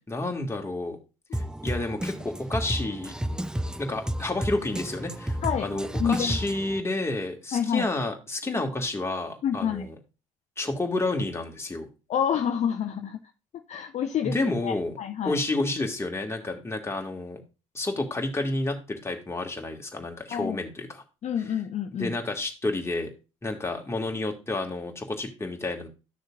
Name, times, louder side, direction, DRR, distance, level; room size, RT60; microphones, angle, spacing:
voice 1, 0.1-1.0 1.3-3.1 3.8-9.9 10.6-11.9 14.2-15.0 15.2-17.4 17.7-21.0 22.0-23.1 23.4-25.9, left 2 dB, 15° left, 2 dB, 2.0 m, -30 dB
Drum kit, 1.3-6.8, right 1 dB, 5° right, 0.5 m, -32 dB
voice 2, 6.0-6.4 7.5-7.9 9.4-9.8 12.1-13.2 13.5-15.4 20.3-20.6 21.2-22.1, left 8 dB, 40° left, 8 dB, 0.6 m, -28 dB
11.5 x 6.5 x 2.5 m, 0.29 s
hypercardioid pair, 55°, 17 cm